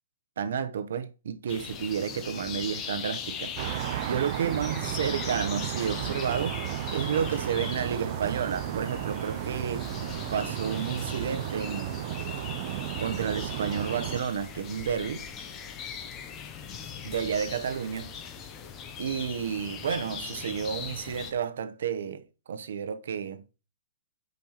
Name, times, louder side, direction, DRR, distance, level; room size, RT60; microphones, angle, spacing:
voice 1, 0.4-6.6 6.9-9.9 10.3-12.0 13.0-15.2 17.0-18.1 19.0-23.4, right 7 dB, 60° right, 0.8 m, -31 dB
sound 1, 1.5-21.3, left 7 dB, 15° left, 0.6 m, -40 dB
sound 2, 3.6-14.2, right 13 dB, 35° right, 0.4 m, -34 dB
10.0 x 5.3 x 3.0 m
hypercardioid pair, 170°, 0 cm